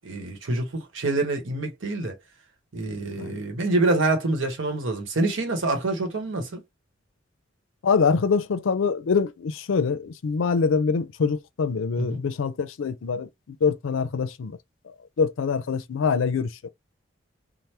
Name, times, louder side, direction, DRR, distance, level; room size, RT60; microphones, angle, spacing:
voice 1, 0.0-2.2 2.7-6.6 12.0-12.2, right 2 dB, 80° right, 0.9 m, -26 dB
voice 2, 7.8-14.6 15.2-16.7, left 5 dB, 85° left, 0.4 m, -24 dB
3.3 x 2.0 x 2.8 m
head